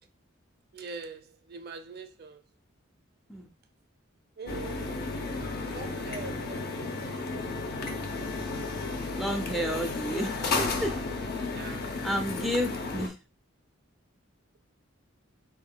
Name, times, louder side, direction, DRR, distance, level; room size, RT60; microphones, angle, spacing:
voice 1, 0.7-2.4 4.4-4.9 5.6-6.9 11.5-12.5, right 3 dB, 50° right, 0.6 m, -43 dB
sound 1, 4.5-13.1, left 3 dB, 55° left, 0.6 m, -33 dB
voice 2, 9.1-10.9 12.0-13.2, equal, ahead, 0.4 m, -31 dB
3.8 x 3.6 x 2.2 m
head